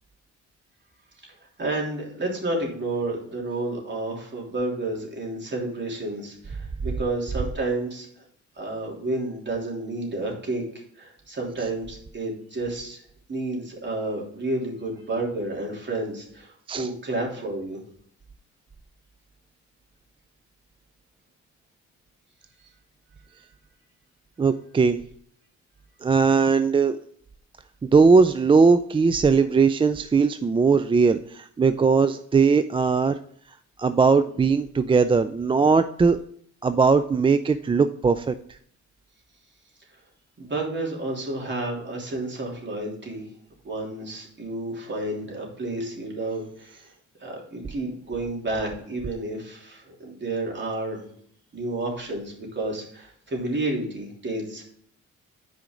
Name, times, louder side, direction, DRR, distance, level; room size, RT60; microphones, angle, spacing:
voice 1, 1.6-8.1 8.6-10.6 11.0-13.0 13.3-17.8 22.6-22.7 40.4-43.3 43.6-46.9 47.2-51.0 51.5-54.6, right 2 dB, 35° right, -1 dB, 3.2 m, -30 dB
voice 2, 24.4-25.0 26.0-27.0 27.8-33.2 33.8-36.2 36.6-38.4, right 5 dB, 20° right, 11 dB, 0.3 m, -19 dB
9.0 x 5.1 x 3.8 m, 0.63 s
cardioid pair, 90°, 30 cm